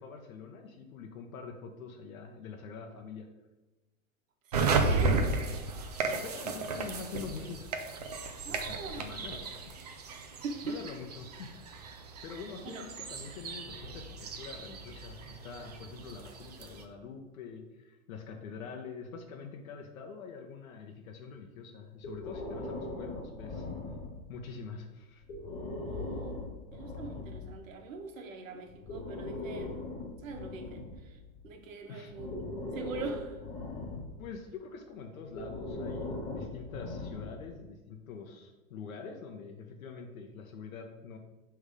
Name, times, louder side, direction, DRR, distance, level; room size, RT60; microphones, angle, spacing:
voice 1, 0.0-3.3 6.1-7.7 8.5-9.5 10.6-23.7 24.3-25.2 26.8-26.9 31.9-32.1 34.2-41.2, left 5 dB, 80° left, 3 dB, 0.9 m, -45 dB
voice 2, 4.4-5.4 6.4-6.5 8.4-9.5 9.7-9.9 10.4-10.8 12.6-12.9 25.8-29.8 30.2-31.2 31.4-33.4, right 4 dB, 70° right, 4 dB, 1.2 m, -42 dB
sound 1, 4.5-16.8, right 3 dB, 30° right, 0.4 m, -34 dB
Breathing, 22.0-24.4 25.2-27.6 28.7-31.5 32.1-34.3 35.3-37.6, left 2 dB, 20° left, 1.4 m, -40 dB
6.6 x 3.5 x 5.0 m, 1.1 s
supercardioid pair, 170°, 41 cm